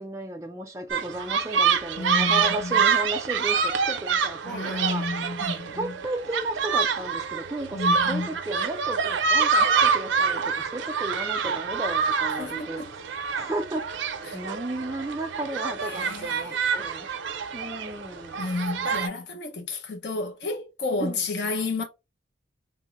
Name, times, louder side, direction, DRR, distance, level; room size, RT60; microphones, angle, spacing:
voice 1, 0.0-5.0 5.7-12.8 13.3-17.1 17.5-18.4 21.0-21.3, right 1 dB, 15° right, 0.4 m, -34 dB
sound 1, 0.9-19.1, right 6 dB, 80° right, 0.4 m, -26 dB
voice 2, 2.0-2.8 4.4-5.9 7.7-8.3 12.4-12.9 14.2-14.4 15.8-16.9 18.3-21.8, left 3 dB, 65° left, 0.6 m, -31 dB
3.5 x 2.0 x 2.9 m
head